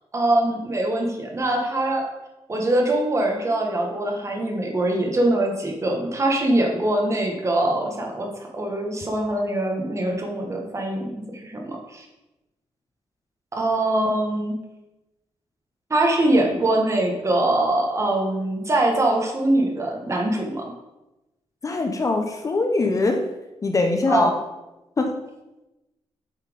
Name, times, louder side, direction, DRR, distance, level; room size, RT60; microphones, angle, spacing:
voice 1, 0.1-2.0 2.5-8.3 8.5-12.0 13.5-14.6 15.9-20.6 24.1-24.3, right 1 dB, 25° right, 1 dB, 1.4 m, -23 dB
voice 2, 21.6-23.3 23.6-24.3 25.0-25.2, left 2 dB, 30° left, 4 dB, 0.7 m, -22 dB
7.6 x 5.7 x 5.1 m, 0.99 s
wide cardioid pair, 175°, 11 cm